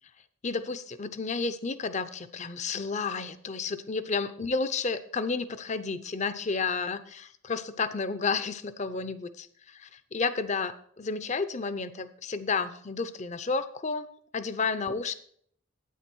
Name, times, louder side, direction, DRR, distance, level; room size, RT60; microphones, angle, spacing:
voice 1, 0.4-15.1, left 4 dB, 35° left, 13 dB, 0.6 m, -31 dB
9.2 x 8.9 x 4.5 m, 0.62 s
head